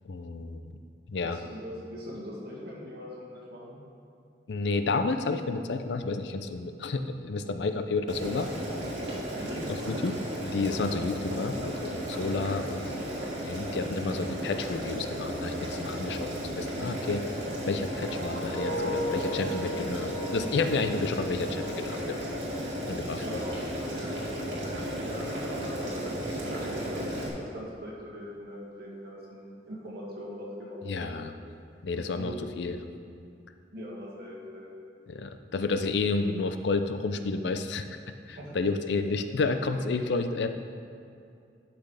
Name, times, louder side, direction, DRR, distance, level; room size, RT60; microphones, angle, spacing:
voice 1, 0.1-0.7 1.1-1.4 4.5-8.5 9.9-10.1 10.4-13.0 13.4-22.2 22.9-23.4 30.9-31.3 31.8-32.8 35.1-38.0 38.3-40.5, left 3 dB, 70° left, 8 dB, 0.5 m, -31 dB
voice 2, 1.1-3.8 9.4-9.7 23.2-24.2 25.0-31.2 31.9-32.5 33.7-34.7 38.4-38.7 39.7-39.8, equal, 60° right, -4 dB, 2.0 m, -41 dB
Boiling, 8.1-27.3, equal, 80° right, 2.0 m, -34 dB
sound 1, 17.6-22.6 23.0-23.3, left 1 dB, ahead, 2.1 m, -37 dB
12.0 x 6.0 x 3.3 m, 2.5 s
head